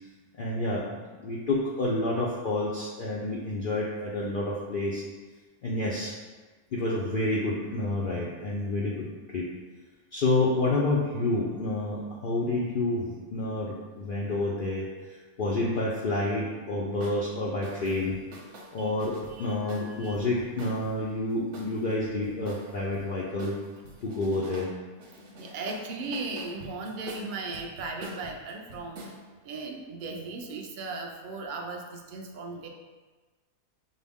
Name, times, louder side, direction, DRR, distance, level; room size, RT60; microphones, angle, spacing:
voice 1, 0.4-5.0 5.6-6.1 6.7-9.1 9.3-9.5 10.1-18.2 18.7-23.5 24.0-24.7, left 2 dB, 85° left, -5 dB, 0.4 m, -29 dB
sound 1, 17.0-17.2 17.6-21.0 21.5-23.1 23.4-24.7 25.0-29.2, right 1 dB, 60° right, 0.9 m, -45 dB
voice 2, 19.3-20.2 25.4-29.0 29.4-32.7, right 3 dB, 80° right, 1 dB, 0.4 m, -37 dB
5.5 x 2.1 x 3.5 m, 1.4 s
omnidirectional pair, 1.5 m